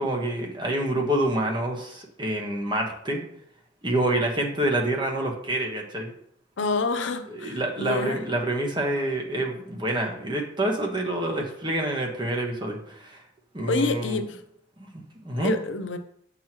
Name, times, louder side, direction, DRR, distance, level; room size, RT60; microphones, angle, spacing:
voice 1, 0.0-3.2 3.8-6.1 7.3-13.2 13.5-14.2 14.8-15.5, right 1 dB, 25° right, 0 dB, 1.3 m, -27 dB
voice 2, 6.6-8.2 13.6-14.3 15.4-16.0, left 3 dB, 75° left, 8 dB, 0.7 m, -27 dB
8.3 x 6.0 x 3.0 m, 0.70 s
head